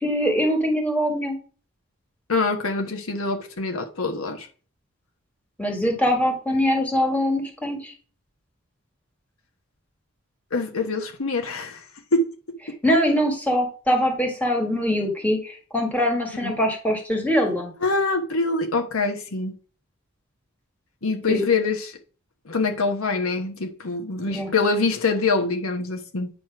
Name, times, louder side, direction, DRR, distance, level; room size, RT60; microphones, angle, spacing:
voice 1, 0.0-1.4 5.6-7.9 12.8-17.7 21.3-21.4 24.3-24.5, equal, 5° left, 1.8 m, -23 dB
voice 2, 2.3-4.5 10.5-11.8 12.1-12.2 16.3-16.6 17.8-19.5 21.0-22.0 22.5-26.3, left 3 dB, 85° left, 1.3 m, -24 dB
9.4 x 3.2 x 5.9 m
head